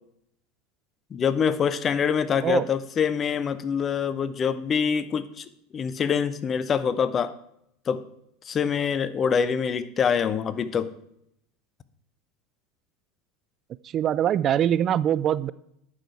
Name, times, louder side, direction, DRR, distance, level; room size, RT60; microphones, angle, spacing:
voice 1, 1.1-5.4 5.7-7.3 7.9-8.0 8.5-10.9, left 7 dB, 35° left, 14 dB, 0.7 m, -25 dB
voice 2, 2.3-2.7 13.9-15.5, right 10 dB, 40° right, 18 dB, 0.3 m, -23 dB
9.7 x 6.1 x 4.7 m, 0.74 s
hypercardioid pair, 85°, 0 cm